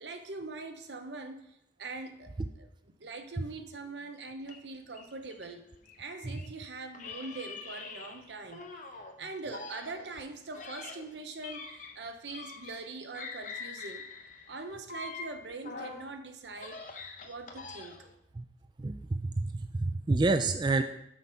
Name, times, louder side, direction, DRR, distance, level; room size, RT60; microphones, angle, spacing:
voice 1, 0.0-5.6 6.0-8.6 9.2-14.1 14.5-18.0, right 3 dB, 80° right, 7 dB, 0.9 m, -43 dB
sound 1, 4.4-6.5 6.9-9.1 9.5-12.9 13.1-16.1 16.5-18.2, left 4 dB, 45° left, 0.8 m, -45 dB
voice 2, 18.8-20.8, right 3 dB, 25° right, 8 dB, 0.3 m, -28 dB
6.3 x 5.3 x 5.7 m, 0.81 s
head